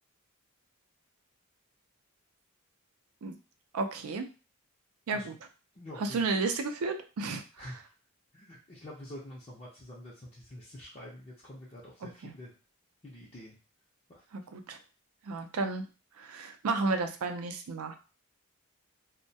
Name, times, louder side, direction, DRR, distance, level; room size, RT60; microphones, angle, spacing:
voice 1, 3.7-4.2 5.1-5.3 6.0-7.7 12.0-12.3 14.3-14.8 15.2-15.8 16.2-18.0, right 3 dB, 85° right, 7 dB, 0.4 m, -32 dB
voice 2, 5.7-6.2 7.6-7.9 8.3-12.5 13.0-13.6 14.1-14.3, left 1 dB, 30° left, -6 dB, 0.5 m, -47 dB
2.2 x 2.1 x 2.7 m, 0.33 s
head